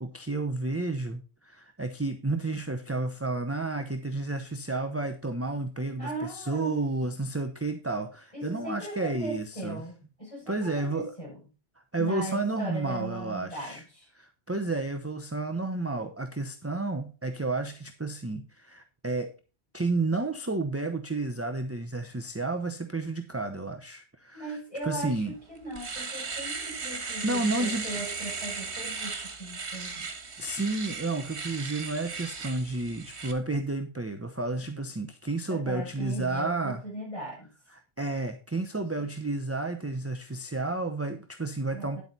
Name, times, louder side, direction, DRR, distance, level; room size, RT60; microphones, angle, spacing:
voice 1, 0.0-9.8 10.5-11.1 11.9-13.8 14.1-19.3 19.7-24.6 24.8-25.3 26.9-28.0 30.4-36.8 37.7-42.0, right 2 dB, 15° right, 6 dB, 0.8 m, -31 dB
voice 2, 6.0-6.8 8.3-11.4 12.0-14.1 24.3-30.1 35.5-37.5 39.0-39.1 41.7-42.0, right 1 dB, 30° left, -4 dB, 7.3 m, -38 dB
Domestic sounds home sounds, 25.1-25.2 25.6-33.3, right 4 dB, 85° right, 1.7 m, -36 dB
10.0 x 8.3 x 4.2 m, 0.33 s
omnidirectional pair, 1.1 m